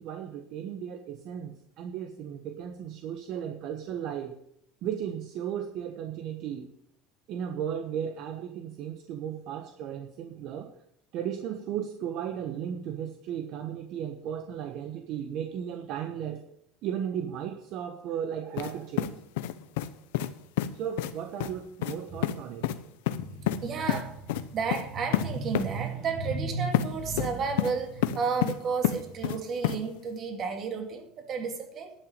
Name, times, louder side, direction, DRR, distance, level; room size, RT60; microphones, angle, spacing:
voice 1, 0.0-4.3 4.8-6.7 7.3-10.7 11.1-16.4 16.8-19.2 20.7-22.8, right 9 dB, 55° right, 1.1 m, -35 dB
sound 1, 18.6-18.7 19.0-19.9 20.1-20.3 20.6-20.7 21.0-21.1 21.4-21.5 21.8-22.0 22.2-22.4 22.6-22.8 23.1-23.6 23.9-24.0 24.3-24.4 24.7-24.8 25.1-25.3 25.5-25.7 26.7-26.9 27.2-27.7 28.0-28.5 28.8-29.4 29.6-29.8, left 13 dB, 90° left, 0.8 m, -27 dB
voice 2, 23.1-31.9, right 5 dB, 40° right, 2.3 m, -32 dB
11.5 x 5.9 x 8.7 m
supercardioid pair, 130°, 0 cm